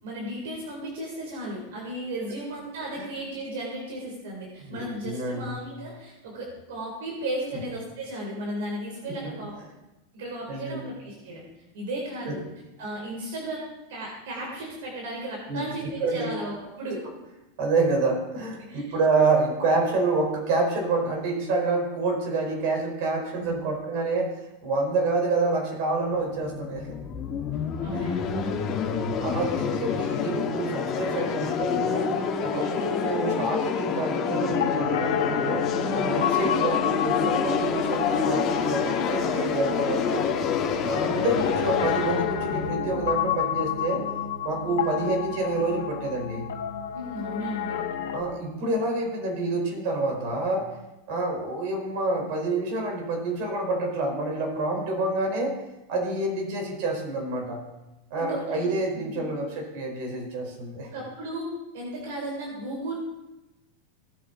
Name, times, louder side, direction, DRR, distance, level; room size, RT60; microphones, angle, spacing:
voice 1, 0.0-9.6 10.1-11.4 11.7-12.4 12.8-17.1 18.6-19.0 23.3-23.6 27.8-28.6 32.6-32.9 46.9-47.9 58.2-58.7 59.1-59.3 60.8-62.9, right 1 dB, 75° right, -2 dB, 4.3 m, -35 dB
voice 2, 4.7-5.6 9.1-9.3 10.5-10.8 12.2-12.3 15.5-15.7 16.0-16.3 17.6-24.3 24.6-27.0 27.9-28.1 29.2-32.1 32.4-35.7 35.9-40.3 40.9-44.0 44.4-46.5 48.1-50.6 51.1-55.5 55.9-57.6 58.1-60.9, right 2 dB, 60° right, 1 dB, 5.2 m, -27 dB
sound 1, 26.1-43.9, left 6 dB, 35° left, 1.9 m, -28 dB
Piano, 34.5-48.2, left 9 dB, 90° left, 1.2 m, -30 dB
19.0 x 8.5 x 4.4 m, 0.98 s
supercardioid pair, 135°, 0 cm